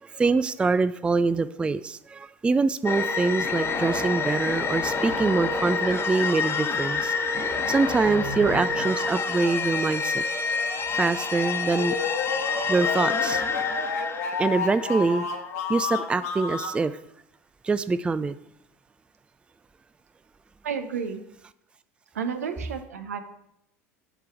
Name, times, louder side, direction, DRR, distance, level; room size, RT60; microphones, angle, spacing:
voice 1, 0.0-7.1 7.7-10.2 10.9-12.0 12.7-13.4 14.4-15.2 15.7-17.0 17.6-18.4, right 4 dB, 10° right, 14 dB, 0.3 m, -24 dB
sound 1, 2.9-15.4, left 4 dB, 30° left, 1.2 m, -28 dB
sound 2, 11.8-16.8, left 5 dB, 65° left, 1.3 m, -31 dB
voice 2, 20.6-21.2 22.1-23.2, right 6 dB, 75° right, 8 dB, 0.9 m, -31 dB
8.0 x 6.0 x 4.7 m, 0.77 s
figure-of-eight pair, 70°, 8 cm